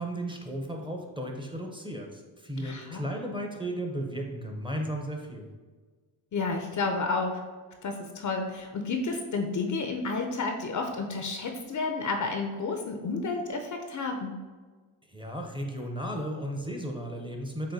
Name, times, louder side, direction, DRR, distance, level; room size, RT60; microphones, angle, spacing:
voice 1, 0.0-5.5 15.1-17.7, right 1 dB, 10° right, 1 dB, 0.7 m, -35 dB
voice 2, 2.6-3.0 6.3-7.4 7.8-14.3, left 3 dB, 40° left, 4 dB, 0.6 m, -31 dB
7.4 x 2.6 x 2.7 m, 1.4 s
cardioid pair, 85°, 48 cm